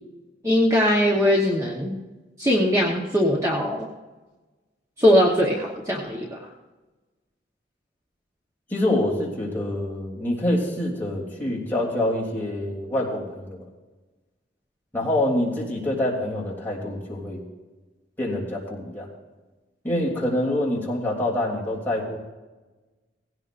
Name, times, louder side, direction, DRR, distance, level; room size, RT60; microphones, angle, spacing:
voice 1, 0.4-2.0 2.4-3.9 5.0-6.4, equal, 15° right, -3 dB, 1.2 m, -20 dB
voice 2, 8.7-13.6 14.9-17.4 18.2-19.1 19.8-22.2, left 1 dB, 10° left, -5 dB, 3.2 m, -26 dB
18.0 x 17.0 x 2.6 m, 1.2 s
head